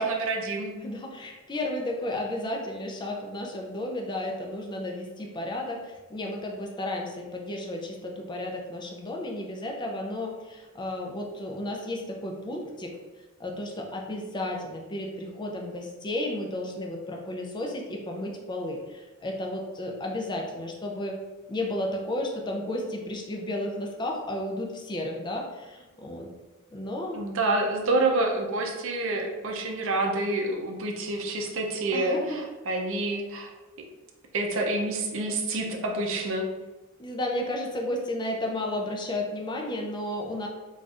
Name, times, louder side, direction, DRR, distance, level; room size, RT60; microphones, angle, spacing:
voice 1, 0.0-0.7 27.1-33.5 34.3-36.4, right 2 dB, 65° right, 2 dB, 0.5 m, -28 dB
voice 2, 0.8-13.0 13.4-21.1 21.5-26.3 26.7-27.2 31.9-32.4 37.0-40.5, left 1 dB, 20° left, 0 dB, 0.4 m, -33 dB
4.0 x 2.4 x 2.4 m, 1.2 s
head